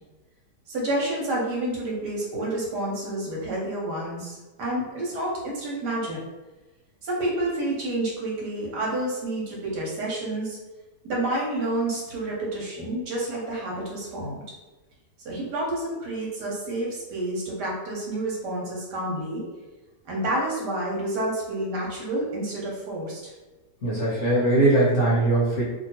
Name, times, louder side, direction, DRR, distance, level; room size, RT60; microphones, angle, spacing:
voice 1, 0.7-6.2 7.0-10.6 11.0-14.4 15.2-19.4 20.0-23.3, right 1 dB, 75° right, -4 dB, 1.5 m, -29 dB
voice 2, 23.8-25.6, right 2 dB, 55° left, -6 dB, 0.9 m, -20 dB
2.8 x 2.8 x 2.8 m, 1.2 s
omnidirectional pair, 1.8 m